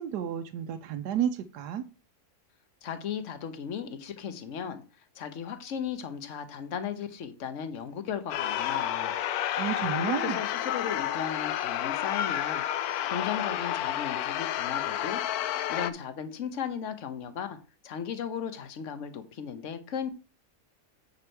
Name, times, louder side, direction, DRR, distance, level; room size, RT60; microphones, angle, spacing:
voice 1, 0.0-1.8 9.6-10.4, right 9 dB, 85° right, 1.2 m, -31 dB
voice 2, 2.8-4.8 5.1-9.2 9.9-12.6 13.1-17.6 17.8-20.1, left 7 dB, 55° left, 1.3 m, -36 dB
sound 1, 8.3-15.9, left 11 dB, 75° left, 1.1 m, -30 dB
9.5 x 4.4 x 4.5 m
omnidirectional pair, 1.7 m